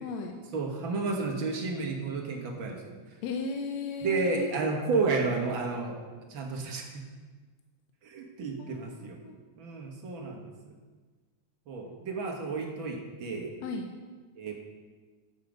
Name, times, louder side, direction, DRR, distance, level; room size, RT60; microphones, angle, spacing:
voice 1, 0.0-0.4 3.2-4.5 8.6-9.4 13.6-13.9, left 4 dB, 75° left, 3 dB, 1.8 m, -36 dB
voice 2, 0.5-2.9 4.0-7.0 8.0-9.2 9.6-10.7 11.7-13.6 14.3-14.5, right 3 dB, 50° right, 0 dB, 1.7 m, -32 dB
11.0 x 7.4 x 5.2 m, 1.4 s
omnidirectional pair, 3.5 m